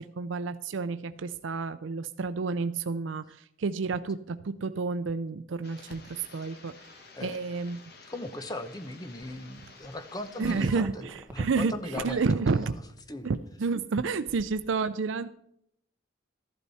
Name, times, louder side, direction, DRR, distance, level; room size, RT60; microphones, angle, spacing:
voice 1, 0.0-7.8 10.4-12.8 13.2-15.3, right 4 dB, 70° right, 11 dB, 0.5 m, -30 dB
sound 1, 5.6-10.8, left 3 dB, 50° left, 1.4 m, -52 dB
voice 2, 8.1-12.7 13.1-13.3, left 1 dB, 20° left, 10 dB, 0.9 m, -38 dB
sound 2, 9.2-9.5 9.8-13.4 13.7-14.7, right 1 dB, 10° right, 1.0 m, -44 dB
14.0 x 11.5 x 4.2 m, 0.73 s
head